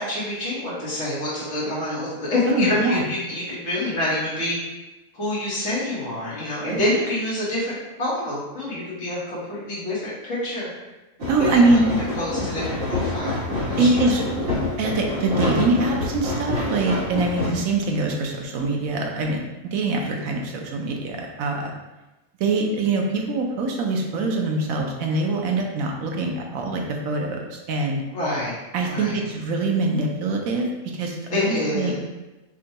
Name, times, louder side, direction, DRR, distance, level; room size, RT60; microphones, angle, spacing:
voice 1, 0.0-4.6 5.1-10.7 11.4-11.8 12.2-14.2 17.5-17.6 28.1-28.6 28.9-29.2 31.3-32.0, left 1 dB, 65° left, -7 dB, 1.7 m, -27 dB
voice 2, 2.5-3.0 6.7-6.8 11.3-11.9 13.8-14.5 14.8-19.4 19.7-21.7 22.4-28.0 28.7-30.7 30.9-31.9, right 3 dB, 80° right, 1 dB, 1.1 m, -23 dB
sound 1, 11.2-17.5, left 2 dB, 60° right, 1.7 m, -27 dB
6.0 x 2.2 x 2.8 m, 1.1 s
omnidirectional pair, 1.4 m